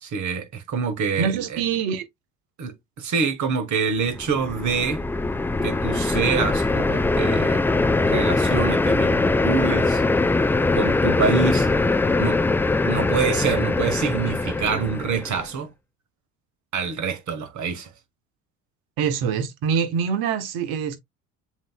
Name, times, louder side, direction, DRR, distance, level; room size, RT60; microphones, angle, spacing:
voice 1, 0.0-1.6 2.6-5.0 5.6-7.6 8.1-10.0 10.7-11.7 12.2-12.4 12.8-15.7 16.7-17.9, right 5 dB, 45° right, 1.3 m, -26 dB
voice 2, 1.2-2.1 19.0-21.0, right 7 dB, 60° right, 1.1 m, -24 dB
sound 1, 4.1-15.5, left 3 dB, 5° left, 0.3 m, -22 dB
7.2 x 2.8 x 2.2 m
hypercardioid pair, 60°, 40 cm